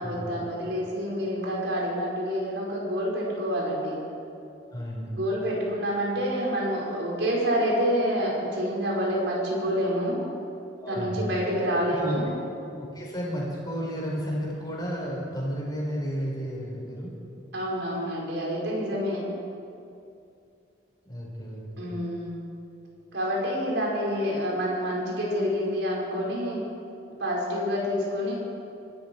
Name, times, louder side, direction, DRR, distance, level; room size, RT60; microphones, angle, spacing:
voice 1, 0.0-4.0 5.1-10.2 10.9-12.3 17.5-19.2 21.8-22.4 23.1-26.6 27.2-28.4, equal, 85° right, -4 dB, 4.9 m, -27 dB
voice 2, 4.7-5.1 10.8-11.3 11.9-12.2 12.8-17.1 21.0-21.9, equal, 20° left, -3 dB, 4.5 m, -32 dB
24.5 x 13.0 x 4.6 m, 2.6 s
head